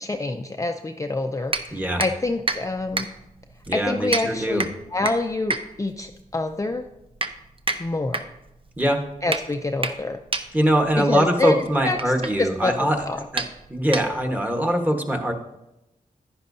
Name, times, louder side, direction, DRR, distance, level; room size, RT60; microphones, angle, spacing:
voice 1, 0.0-3.1 3.7-6.8 7.8-8.2 9.2-10.2 11.0-11.6 11.8-12.1 12.4-13.2, left 2 dB, 20° left, 5 dB, 0.5 m, -26 dB
sound 1, 1.5-14.5, right 3 dB, 40° right, 0.7 m, -32 dB
voice 2, 1.7-2.0 3.7-4.6 8.8-9.0 10.5-13.0 13.3-13.4 13.7-15.3, right 1 dB, 10° right, 3 dB, 1.4 m, -22 dB
10.5 x 10.0 x 2.7 m, 0.91 s
cardioid pair, 60°, 15 cm